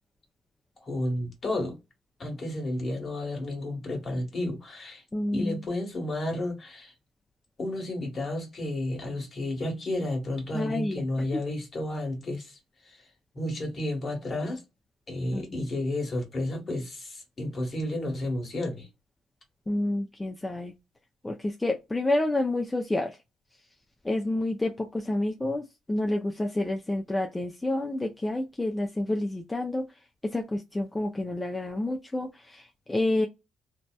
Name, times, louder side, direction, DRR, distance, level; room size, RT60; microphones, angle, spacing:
voice 1, 0.8-1.8 2.2-5.0 5.3-6.9 7.6-12.6 12.8-13.0 13.3-14.6 15.1-18.9, left 1 dB, 45° left, 1.3 m, -32 dB
voice 2, 5.1-5.6 10.5-11.0 15.3-15.6 19.7-20.7 21.2-23.2 24.0-29.8 30.2-33.3, left 1 dB, 15° left, 0.4 m, -29 dB
2.7 x 2.0 x 2.2 m
supercardioid pair, 65°, 0 cm